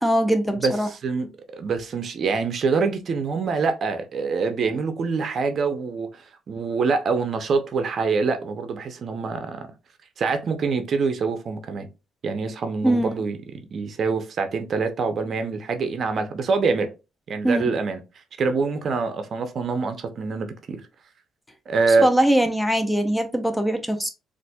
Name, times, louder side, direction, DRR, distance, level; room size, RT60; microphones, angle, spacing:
voice 1, 0.0-0.9 12.8-13.2 17.4-17.8 21.9-24.1, right 1 dB, 5° left, 0.6 m, -22 dB
voice 2, 1.0-6.1 6.5-9.6 10.2-11.9 12.2-16.9 17.3-18.0 18.4-20.8 21.7-22.1, right 4 dB, 55° right, 0.6 m, -25 dB
4.1 x 2.5 x 2.2 m
cardioid pair, 90°, 0 cm